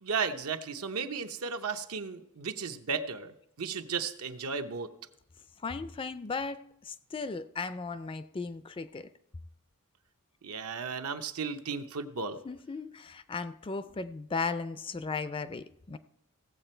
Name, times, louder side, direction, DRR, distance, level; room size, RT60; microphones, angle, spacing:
voice 1, 0.0-4.9 10.4-12.4, right 5 dB, 75° right, 7 dB, 0.9 m, -35 dB
voice 2, 5.6-9.1 12.4-16.0, left 4 dB, 25° left, 13 dB, 0.4 m, -36 dB
17.0 x 7.5 x 4.4 m, 0.80 s
head